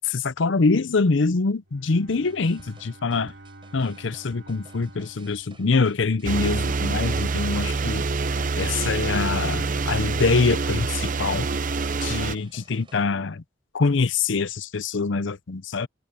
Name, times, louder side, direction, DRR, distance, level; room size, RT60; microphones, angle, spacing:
voice 1, 0.0-3.3 3.7-8.0 8.6-11.5 12.0-13.4 13.7-15.9, left 4 dB, 65° left, 0.7 m, -24 dB
Bowed string instrument, 1.6-6.5, right 1 dB, 60° right, 3.9 m, -49 dB
sound 1, 2.1-13.0, right 2 dB, 25° right, 7.3 m, -54 dB
sound 2, 6.2-12.3, right 4 dB, 40° right, 0.7 m, -26 dB
head